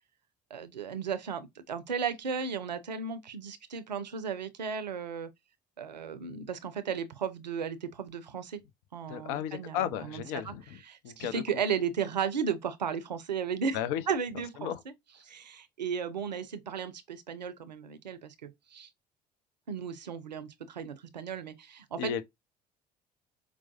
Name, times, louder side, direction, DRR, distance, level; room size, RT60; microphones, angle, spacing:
voice 1, 0.5-5.3 5.8-8.6 8.9-10.5 10.9-13.8 14.1-14.7 15.3-18.9 19.7-22.2, right 6 dB, 85° right, 0.5 m, -35 dB
voice 2, 9.1-11.4 13.7-14.0 14.6-14.8 22.0-22.2, left 10 dB, 60° left, 0.5 m, -34 dB
4.5 x 2.0 x 2.8 m
figure-of-eight pair, 55°, 21 cm